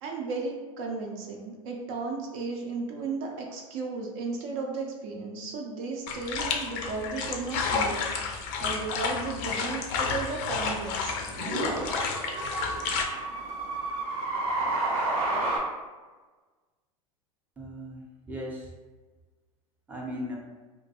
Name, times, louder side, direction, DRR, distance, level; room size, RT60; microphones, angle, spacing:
voice 1, 0.0-11.2, right 4 dB, 60° right, 0 dB, 0.5 m, -35 dB
sound 1, 6.1-13.0, left 5 dB, 55° left, 0.4 m, -31 dB
sound 2, 7.6-7.7 9.9-10.1 11.2-15.6, right 2 dB, 80° right, 0.8 m, -30 dB
voice 2, 17.6-18.7 19.9-20.4, equal, 10° right, -3 dB, 0.6 m, -37 dB
2.3 x 2.1 x 2.7 m, 1.3 s
hypercardioid pair, 90°, 18 cm